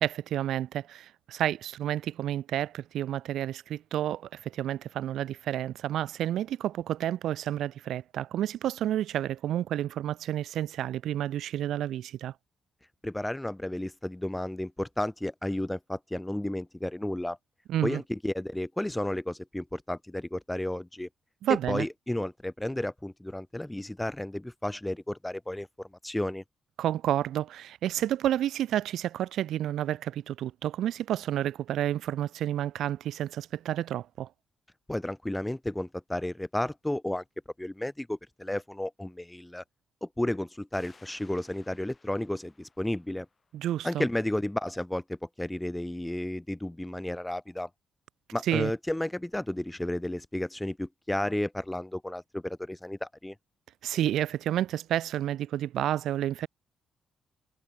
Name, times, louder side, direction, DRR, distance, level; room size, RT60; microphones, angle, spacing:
voice 1, 0.0-12.3 17.7-18.0 21.4-21.9 26.8-34.3 43.5-44.1 48.5-48.7 53.8-56.5, right 12 dB, 80° right, 0.4 m, -30 dB
voice 2, 13.0-17.4 17.8-21.1 21.5-26.4 34.9-37.2 37.6-39.6 40.0-43.3 43.8-47.7 48.3-53.3, left 1 dB, 10° left, 0.4 m, -32 dB
sound 1, 40.7-44.1, left 4 dB, 30° left, 5.2 m, -61 dB
cardioid pair, 90°, 0 cm